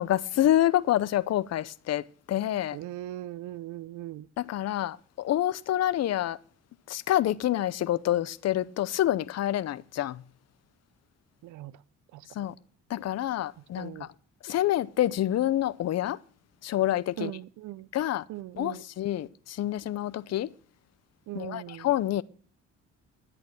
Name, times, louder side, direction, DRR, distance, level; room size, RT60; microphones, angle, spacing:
voice 1, 0.0-2.8 4.4-6.4 6.9-10.2 12.4-12.5 12.9-14.1 14.4-16.2 16.6-17.3 17.9-18.2 18.6-20.5 21.4-22.2, left 13 dB, 55° left, 0.7 m, -27 dB
voice 2, 2.7-4.3 11.4-11.8 12.1-12.3 13.8-14.1 17.2-17.9 18.3-18.8 21.3-21.9, right 15 dB, 80° right, 0.5 m, -39 dB
11.0 x 8.6 x 7.5 m
cardioid pair, 90°, 30 cm